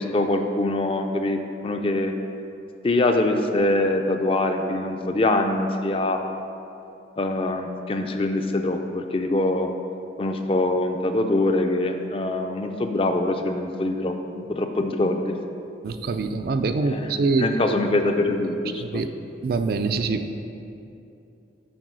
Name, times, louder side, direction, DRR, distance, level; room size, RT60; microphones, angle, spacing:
voice 1, 0.0-2.1 2.8-6.4 7.2-9.7 10.2-15.3 16.8-19.0, left 2 dB, 30° left, 5 dB, 0.4 m, -24 dB
voice 2, 15.8-17.8 18.8-19.1 19.4-20.2, right 4 dB, 50° right, 8 dB, 0.3 m, -24 dB
7.8 x 4.6 x 6.2 m, 2.8 s
head